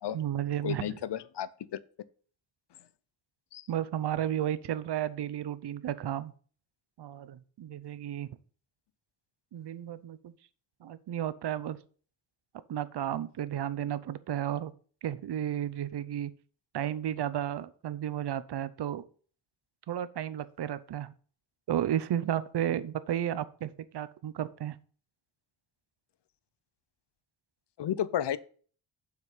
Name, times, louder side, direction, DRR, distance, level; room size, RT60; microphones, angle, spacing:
voice 1, 0.1-1.0 3.7-6.3 7.0-8.3 9.5-10.3 10.8-11.8 12.7-14.7 15.0-16.3 16.7-19.0 19.9-21.1 21.7-24.8, right 10 dB, 55° right, 15 dB, 0.7 m, -33 dB
voice 2, 0.6-1.8 3.5-3.7 27.8-28.4, left 10 dB, 60° left, 17 dB, 0.7 m, -32 dB
7.5 x 6.0 x 5.6 m, 0.43 s
wide cardioid pair, 155°, 48 cm